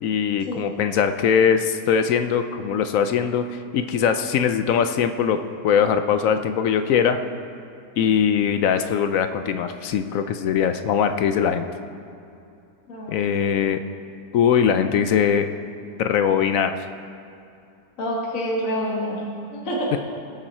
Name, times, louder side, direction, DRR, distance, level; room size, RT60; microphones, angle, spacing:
voice 1, 0.0-5.4 5.6-7.2 8.0-11.7 13.1-13.8 14.3-15.5 16.0-16.8 19.9-20.0, left 7 dB, 70° left, 8 dB, 0.8 m, -21 dB
voice 2, 12.9-13.2 18.0-19.2 19.5-20.0, equal, 50° left, -4 dB, 2.0 m, -27 dB
19.0 x 7.4 x 4.3 m, 2.6 s
omnidirectional pair, 1.8 m